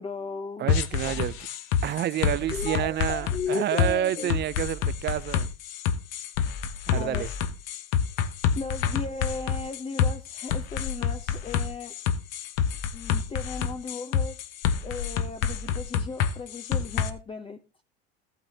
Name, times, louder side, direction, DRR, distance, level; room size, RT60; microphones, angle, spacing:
voice 1, 0.0-1.2 2.5-4.4 6.9-7.3 8.5-11.9 12.9-14.4 14.8-17.6, left 4 dB, 15° left, 0.7 m, -35 dB
voice 2, 0.6-1.3 1.8-5.5 6.9-7.3, right 12 dB, 35° right, 0.5 m, -29 dB
sound 1, 0.7-17.1, left 7 dB, 60° left, 1.1 m, -27 dB
14.0 x 9.2 x 2.9 m
hypercardioid pair, 80°, 33 cm